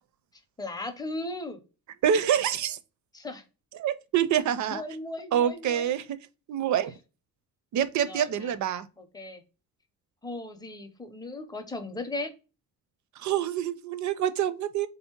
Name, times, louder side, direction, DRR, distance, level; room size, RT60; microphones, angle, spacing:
voice 1, 0.6-1.6 3.1-3.4 4.7-5.9 8.0-8.5 9.0-9.4 10.2-12.3, left 2 dB, 10° left, 0.5 m, -37 dB
voice 2, 2.0-2.8 3.8-4.8 5.3-6.1 6.5-6.9 7.7-8.9 13.2-14.9, right 9 dB, 55° right, 0.5 m, -26 dB
4.0 x 2.7 x 4.3 m
cardioid pair, 170°, 36 cm